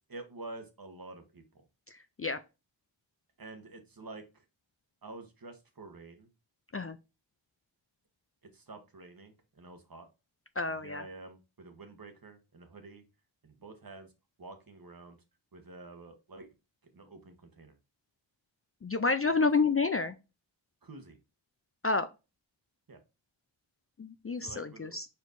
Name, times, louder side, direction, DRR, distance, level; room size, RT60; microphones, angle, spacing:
voice 1, 0.1-1.4 3.4-4.4 5.0-6.3 8.5-10.1 10.7-13.0 13.4-14.1 14.4-15.2 15.5-16.5 16.9-17.8 19.3-19.7 20.8-21.2 22.9-23.0 24.4-25.0, right 2 dB, 45° right, 7 dB, 1.3 m, -48 dB
voice 2, 10.6-11.0 18.8-20.1 21.8-22.1 24.0-25.1, left 4 dB, 30° left, 10 dB, 0.4 m, -29 dB
4.5 x 4.4 x 2.6 m, 0.28 s
cardioid pair, 45°, 48 cm